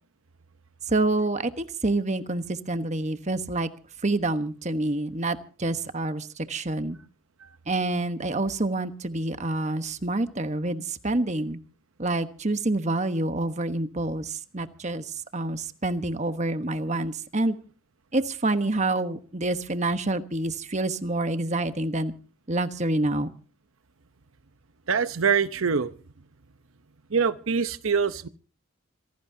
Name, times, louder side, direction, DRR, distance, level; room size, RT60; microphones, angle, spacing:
voice 1, 0.9-3.7 4.0-7.0 7.7-11.6 12.0-15.0 15.3-17.6 18.1-22.1 22.5-23.3, right 2 dB, 35° right, 1.2 m, -27 dB
voice 2, 24.9-25.9 27.1-28.3, right 6 dB, 80° right, 0.9 m, -24 dB
27.0 x 17.0 x 2.8 m
head